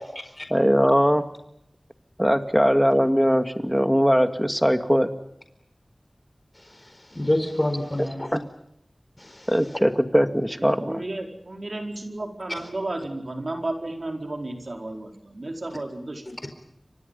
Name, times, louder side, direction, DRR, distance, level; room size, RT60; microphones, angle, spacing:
voice 1, 0.5-1.3 2.2-5.1 8.3-8.4 9.5-11.0, equal, ahead, 8 dB, 2.2 m, -20 dB
voice 2, 6.6-8.3 9.2-9.5, left 1 dB, 25° left, 6 dB, 4.3 m, -28 dB
voice 3, 10.6-16.2, right 2 dB, 60° right, 3 dB, 4.7 m, -33 dB
30.0 x 25.0 x 5.5 m, 0.76 s
wide cardioid pair, 65°, 0 cm